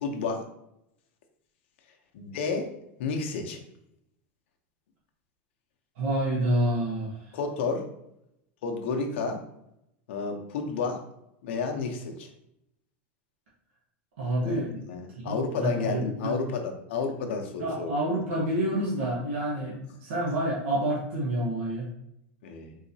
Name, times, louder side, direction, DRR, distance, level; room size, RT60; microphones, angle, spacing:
voice 1, 0.0-0.5 2.1-2.7 3.0-3.6 7.3-7.9 8.6-9.4 10.1-11.0 11.4-12.3 14.4-17.9 19.6-19.7 22.4-22.8, left 4 dB, 75° left, 3 dB, 0.7 m, -31 dB
voice 2, 6.0-7.2 14.2-14.7 15.2-16.4 17.6-21.9, right 1 dB, 80° right, -5 dB, 1.1 m, -28 dB
3.9 x 2.8 x 2.7 m, 0.80 s
supercardioid pair, 135°, 6 cm